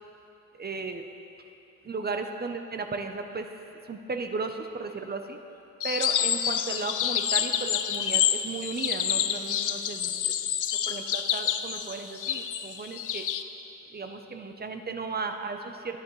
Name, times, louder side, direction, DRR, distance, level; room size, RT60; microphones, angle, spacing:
voice 1, 0.6-1.0 1.8-3.5 3.8-5.4 5.8-10.5 10.9-13.3 13.9-16.0, right 4 dB, 30° right, 6 dB, 0.6 m, -35 dB
sound 1, 5.8-13.4, left 10 dB, 60° left, 0.6 m, -28 dB
18.5 x 9.5 x 3.2 m, 2.8 s
cardioid pair, 110°, 34 cm